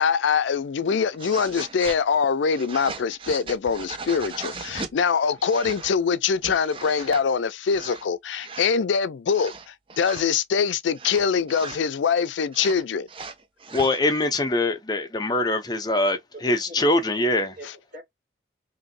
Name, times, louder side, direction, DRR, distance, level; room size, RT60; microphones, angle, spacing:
voice 1, 0.0-13.1, left 6 dB, 80° left, 0.4 m, -23 dB
sound 1, 1.1-2.0 2.5-4.9 5.4-5.9 6.3-7.2 7.7-8.1 8.4-8.6 9.3-10.2 11.0-11.9 12.5-14.0, right 4 dB, 30° right, 0.4 m, -38 dB
voice 2, 13.7-17.5, left 2 dB, 20° left, 0.6 m, -23 dB
voice 3, 16.5-18.0, left 1 dB, 45° right, 1.5 m, -44 dB
3.0 x 2.6 x 2.6 m
head